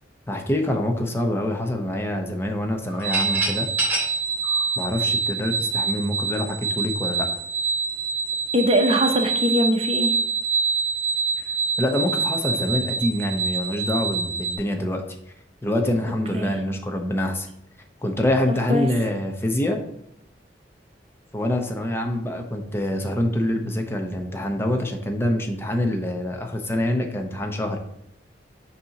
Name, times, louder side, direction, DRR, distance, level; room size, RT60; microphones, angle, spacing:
voice 1, 0.3-3.7 4.8-7.3 11.8-15.0 15.6-17.5 18.0-19.8 21.3-27.8, left 1 dB, 15° left, 4 dB, 0.7 m, -25 dB
sound 1, 2.9-5.6, equal, 10° right, 2.2 m, -30 dB
sound 2, 3.0-14.6, right 5 dB, 70° right, 0.8 m, -26 dB
voice 2, 8.5-10.2 16.3-16.6 18.7-18.9, equal, 35° right, 5 dB, 0.7 m, -21 dB
6.7 x 2.8 x 5.7 m, 0.76 s
head